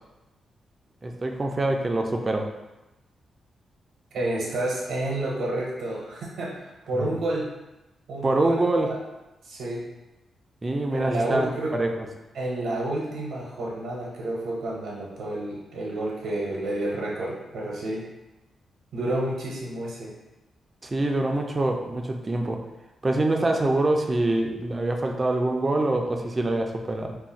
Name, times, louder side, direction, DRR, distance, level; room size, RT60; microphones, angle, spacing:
voice 1, 1.0-2.5 7.0-7.1 8.2-8.9 10.6-11.9 20.8-22.6 23.0-27.2, right 2 dB, 20° right, 3 dB, 0.3 m, -25 dB
voice 2, 4.1-7.5 8.1-8.6 8.8-9.0 9.4-9.8 10.9-11.8 12.3-18.1 18.9-20.1, right 1 dB, 75° right, -4 dB, 0.6 m, -30 dB
2.4 x 2.1 x 3.9 m, 1.0 s
wide cardioid pair, 150°, 0 cm